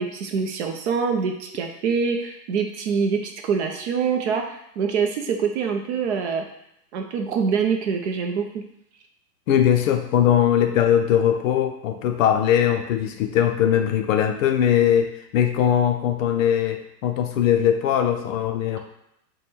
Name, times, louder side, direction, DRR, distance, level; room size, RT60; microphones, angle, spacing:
voice 1, 0.0-6.4 6.9-8.6, right 6 dB, 45° right, 3 dB, 0.5 m, -25 dB
voice 2, 9.5-18.8, left 10 dB, 55° left, 6 dB, 0.5 m, -20 dB
3.3 x 2.2 x 4.2 m, 0.80 s
hypercardioid pair, 140°, 50 cm